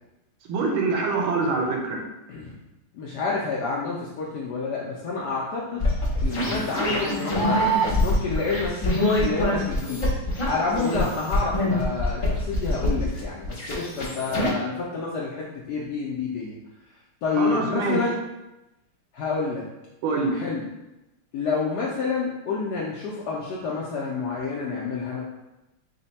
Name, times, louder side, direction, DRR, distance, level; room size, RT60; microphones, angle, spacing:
voice 1, 0.5-2.1 17.3-18.0 20.0-20.4, right 3 dB, 80° right, 2 dB, 1.4 m, -25 dB
voice 2, 2.9-5.9 6.2-7.6 8.0-10.1 10.5-16.6 17.2-18.2 19.1-19.6 20.4-20.6 21.3-25.2, left 4 dB, 75° left, -4 dB, 0.9 m, -28 dB
sound 1, 5.8-14.5, left 1 dB, 45° left, 0.4 m, -25 dB
4.1 x 2.2 x 4.0 m, 0.97 s
omnidirectional pair, 2.3 m